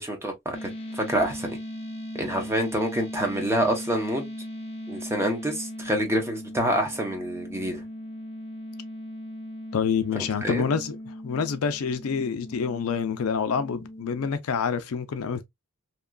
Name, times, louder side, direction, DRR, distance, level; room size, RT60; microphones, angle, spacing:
voice 1, 0.0-1.6 2.1-4.3 4.9-7.8 10.1-10.6, right 1 dB, 10° right, 0.7 m, -27 dB
sound 1, 0.5-14.4, left 1 dB, 25° left, 0.7 m, -38 dB
voice 2, 9.7-15.4, left 6 dB, 70° left, 0.4 m, -27 dB
2.9 x 2.3 x 2.2 m
head